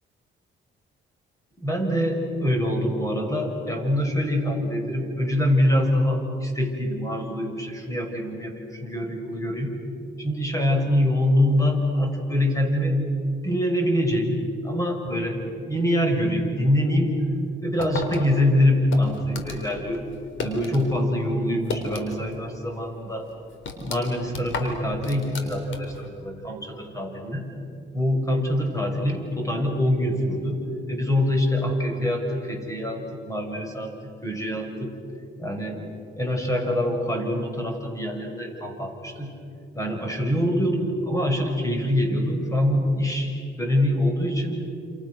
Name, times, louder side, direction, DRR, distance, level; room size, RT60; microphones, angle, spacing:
voice 1, 1.6-9.7 10.2-13.0 13.4-14.4 14.6-17.2 17.6-20.0 20.4-23.3 23.8-27.5 27.9-30.6 30.9-34.9 35.4-35.8 36.2-39.3 39.7-43.3 43.6-44.6, left 1 dB, 15° left, 3 dB, 6.4 m, -24 dB
sound 1, 17.8-20.9 21.2-22.4 22.7-22.8 23.3-26.1, left 4 dB, 75° left, 4.0 m, -34 dB
28.5 x 28.5 x 6.5 m, 2.7 s
cardioid pair, 90°, 20 cm